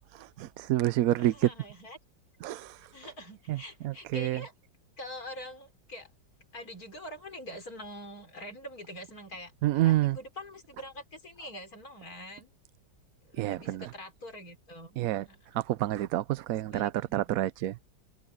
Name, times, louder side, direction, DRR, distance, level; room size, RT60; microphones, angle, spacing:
voice 1, 0.1-1.5 2.4-2.8 3.5-4.4 9.6-10.2 13.4-13.9 15.0-15.2 15.5-17.8, right 14 dB, 75° right, 0.8 m, -28 dB
voice 2, 1.2-2.0 2.9-4.5 5.0-6.1 6.5-12.5 13.3-15.4 16.7-17.2, left 1 dB, 50° left, 5.0 m, -44 dB
omnidirectional pair, 2.0 m